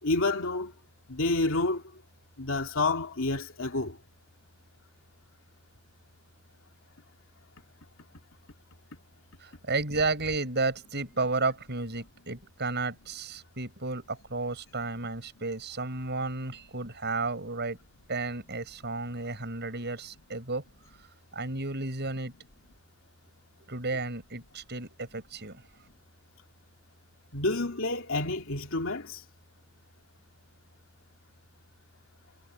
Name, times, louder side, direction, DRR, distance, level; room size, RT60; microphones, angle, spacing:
voice 1, 0.0-0.7 1.1-1.8 2.4-4.0 27.3-29.2, left 2 dB, 65° left, 3.0 m, -29 dB
voice 2, 9.4-17.8 18.1-20.6 21.3-22.3 23.7-25.6, right 3 dB, 55° right, 7.6 m, -32 dB
head